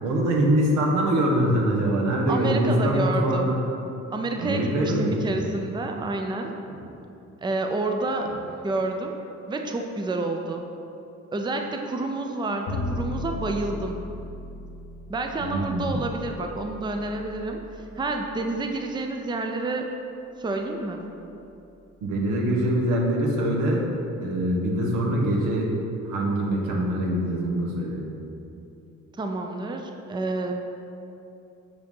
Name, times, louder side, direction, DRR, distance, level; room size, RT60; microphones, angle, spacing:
voice 1, 0.0-3.6 4.4-5.3 6.7-6.8 8.2-8.3 15.4-16.0 22.0-23.9 24.2-25.7 26.0-28.0, right 1 dB, 90° right, -1 dB, 1.1 m, -24 dB
voice 2, 2.3-3.5 4.1-6.5 7.4-8.3 8.6-9.2 9.5-10.6 11.3-14.0 15.1-17.6 18.0-19.9 20.4-21.0 29.2-30.5, right 2 dB, 15° right, 3 dB, 0.5 m, -29 dB
Bowed string instrument, 12.7-18.8, left 1 dB, 80° left, 1.1 m, -37 dB
7.8 x 2.7 x 5.3 m, 2.8 s
cardioid pair, 90°, 30 cm